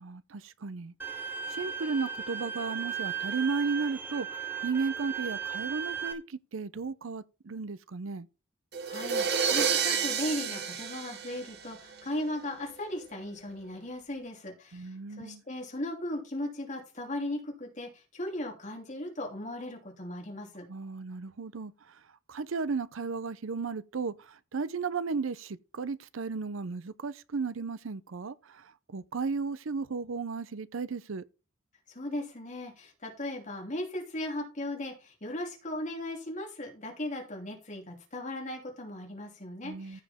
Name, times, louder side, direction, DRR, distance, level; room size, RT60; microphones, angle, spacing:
voice 1, 0.0-8.3 14.7-15.4 20.7-22.0 22.3-31.2 39.6-40.0, right 4 dB, 80° right, 0.6 m, -35 dB
Bowed string instrument, 1.0-6.1, right 7 dB, 10° right, 1.1 m, -36 dB
sound 1, 8.7-12.0, right 6 dB, 55° right, 1.2 m, -30 dB
voice 2, 8.9-20.7 31.9-40.0, left 1 dB, 35° left, 2.8 m, -37 dB
15.0 x 5.0 x 3.6 m
head